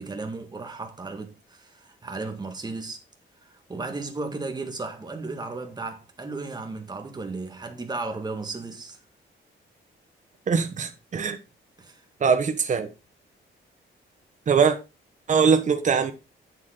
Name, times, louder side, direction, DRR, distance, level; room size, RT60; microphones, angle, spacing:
voice 1, 0.0-3.0 3.4-9.0 11.8-12.0, right 3 dB, 20° right, 1.8 m, -35 dB
voice 2, 10.5-11.4 12.2-12.9 14.5-14.8 15.3-16.1, right 6 dB, 35° right, 1.2 m, -21 dB
9.0 x 7.1 x 3.8 m
wide cardioid pair, 155°, 20 cm